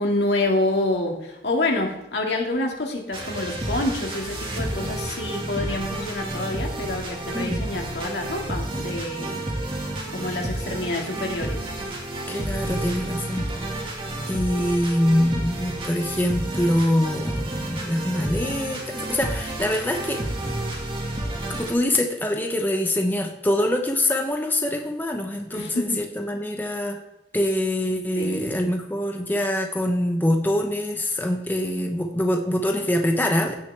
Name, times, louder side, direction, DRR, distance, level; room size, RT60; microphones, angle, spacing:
voice 1, 0.0-9.5 10.1-11.7 25.5-26.0 28.2-28.6, left 2 dB, 80° left, 1 dB, 2.1 m, -27 dB
sound 1, 3.1-21.7, right 1 dB, 30° right, 1.9 m, -30 dB
voice 2, 12.3-13.5 14.3-20.2 21.5-27.0 27.3-33.6, left 1 dB, 10° left, 2 dB, 0.9 m, -24 dB
16.5 x 6.3 x 3.4 m, 0.92 s
head